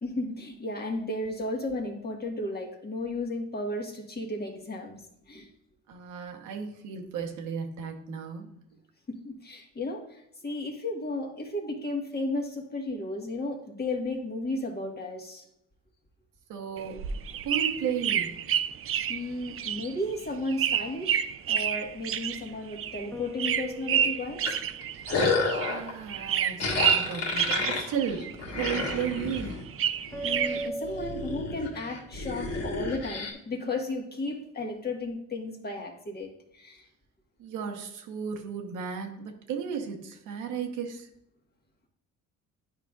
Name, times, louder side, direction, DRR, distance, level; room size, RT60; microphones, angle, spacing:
voice 1, 0.0-5.5 9.2-15.4 19.1-24.6 30.2-36.8, left 2 dB, 30° left, 1 dB, 1.4 m, -34 dB
voice 2, 5.9-8.5 16.5-17.1 17.4-18.3 25.6-29.6 37.4-41.1, right 7 dB, 90° right, 3 dB, 1.1 m, -34 dB
sound 1, 16.8-25.8 26.1-28.3 28.6-30.7, right 9 dB, 45° right, 0.4 m, -29 dB
sound 2, 23.1-25.5 26.7-28.0 30.1-32.3, right 1 dB, 10° left, 0.9 m, -40 dB
sound 3, 24.5-25.9 26.6-29.6 30.1-30.5 30.8-33.3, left 3 dB, 55° left, 1.7 m, -30 dB
9.7 x 5.1 x 2.4 m, 0.79 s
cardioid pair, 90°, 30 cm